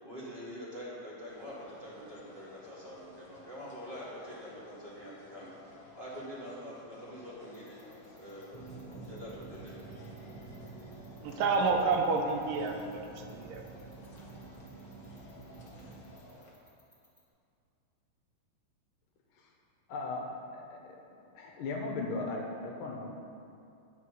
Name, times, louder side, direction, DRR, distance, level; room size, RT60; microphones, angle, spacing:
voice 1, 0.0-5.5 6.0-7.8 8.1-9.7, equal, 20° right, -8 dB, 1.6 m, -45 dB
sound 1, 1.3-16.5, left 2 dB, 50° left, 1.8 m, -55 dB
sound 2, 7.5-17.2, left 1 dB, 10° left, 2.1 m, -65 dB
sound 3, 8.5-16.0, right 4 dB, 60° right, 1.7 m, -49 dB
voice 2, 11.2-13.6, right 4 dB, 80° right, 3 dB, 2.3 m, -29 dB
voice 3, 19.9-20.8 21.3-23.1, left 3 dB, 75° left, 0 dB, 2.6 m, -37 dB
10.5 x 5.9 x 6.4 m, 2.6 s
omnidirectional pair, 3.8 m